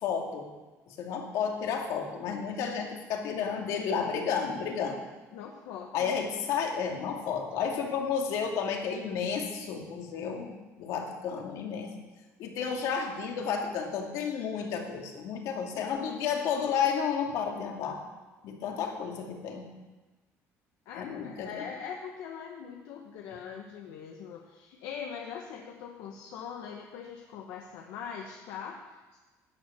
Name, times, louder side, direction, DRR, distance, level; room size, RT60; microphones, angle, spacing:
voice 1, 0.0-0.5 0.9-5.0 5.9-11.9 12.4-18.0 18.4-19.7 20.9-21.6, left 6 dB, 75° left, 2 dB, 2.4 m, -32 dB
voice 2, 5.3-6.1 20.8-29.2, left 7 dB, 90° left, 1 dB, 1.2 m, -42 dB
12.5 x 10.0 x 6.8 m, 1.2 s
cardioid pair, 150°, 6 cm